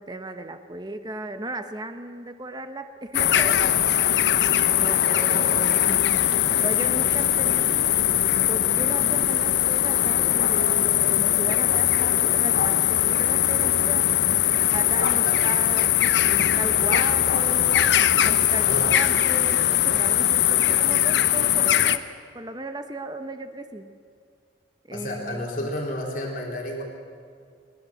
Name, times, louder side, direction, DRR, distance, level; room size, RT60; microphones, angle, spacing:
voice 1, 0.0-3.8 4.7-8.0 8.5-14.1 14.7-17.8 18.2-18.7 18.9-22.0 22.3-24.0 24.9-25.7, right 2 dB, 25° right, 8 dB, 1.0 m, -36 dB
sound 1, 3.1-22.0, left 11 dB, 70° left, 0.9 m, -21 dB
voice 2, 24.9-26.8, left 1 dB, 45° left, -1 dB, 4.1 m, -31 dB
21.0 x 19.5 x 7.7 m, 2.2 s
head